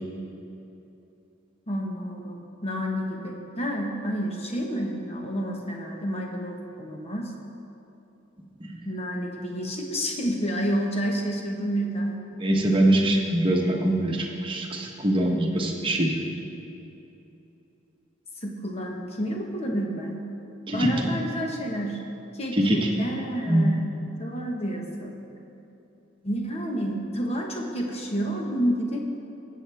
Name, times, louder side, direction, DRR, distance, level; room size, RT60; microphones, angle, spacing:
voice 1, 1.7-7.3 8.8-12.2 18.4-20.2 20.7-22.0 22.3-23.8 24.2-25.2 26.2-29.0, equal, 30° left, 1 dB, 1.2 m, -29 dB
voice 2, 12.4-16.2 20.7-20.9 22.5-22.9 23.5-23.7, right 1 dB, 25° right, 0 dB, 1.2 m, -23 dB
19.5 x 7.8 x 3.5 m, 2.9 s
head